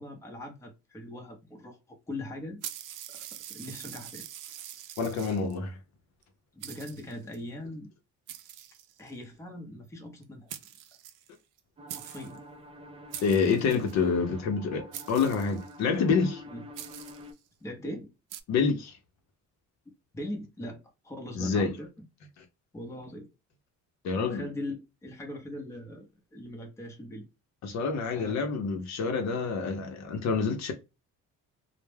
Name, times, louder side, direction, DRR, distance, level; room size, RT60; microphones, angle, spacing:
voice 1, 0.0-1.8 2.1-2.6 3.5-4.3 6.5-7.9 9.0-10.5 12.0-12.4 16.5-16.6 17.6-18.1 20.1-22.0 22.7-23.3 24.1-24.8 25.0-27.3 28.1-28.5, left 1 dB, 10° left, 0.7 m, -40 dB
sound 1, 2.6-5.6 6.2-6.3 6.6-7.4 8.3-9.2 10.2-10.3 10.5-11.6 11.9-12.4 13.1-14.0 14.9-15.8 16.7-17.3 18.3-18.4, right 11 dB, 75° right, 0.5 m, -44 dB
voice 2, 5.0-5.8 13.2-16.4 18.5-19.0 21.4-21.7 24.0-24.5 27.6-30.7, left 5 dB, 60° left, 0.7 m, -27 dB
sound 2, 11.8-17.3, left 1 dB, 20° right, 0.3 m, -48 dB
2.2 x 2.1 x 3.2 m
cardioid pair, 140°, 31 cm